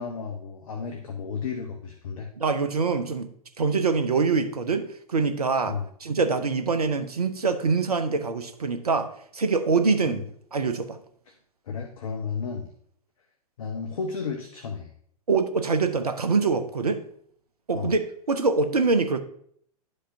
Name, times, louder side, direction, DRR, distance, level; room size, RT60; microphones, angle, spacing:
voice 1, 0.0-2.3 5.7-5.9 10.1-10.2 11.3-11.4 11.7-12.7 13.6-14.9 17.7-17.9, left 5 dB, 60° left, 3 dB, 1.0 m, -33 dB
voice 2, 2.4-3.3 3.6-10.2 10.5-11.0 15.3-17.0 17.7-18.0 18.3-19.2, right 4 dB, 80° right, 8 dB, 0.8 m, -24 dB
11.5 x 5.0 x 2.7 m, 0.64 s
figure-of-eight pair, 100°, 19 cm